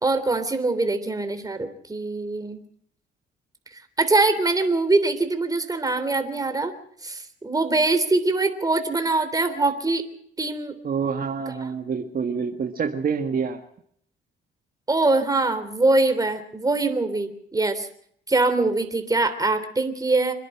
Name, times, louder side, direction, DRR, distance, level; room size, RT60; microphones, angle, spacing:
voice 1, 0.0-2.6 3.7-6.7 7.0-10.0 10.4-10.7 14.9-17.9 18.3-20.3, right 2 dB, 20° right, 8 dB, 3.4 m, -23 dB
voice 2, 10.8-13.6, right 6 dB, 45° right, 4 dB, 1.8 m, -27 dB
26.5 x 11.0 x 9.9 m, 0.67 s
cardioid pair, 90°, 20 cm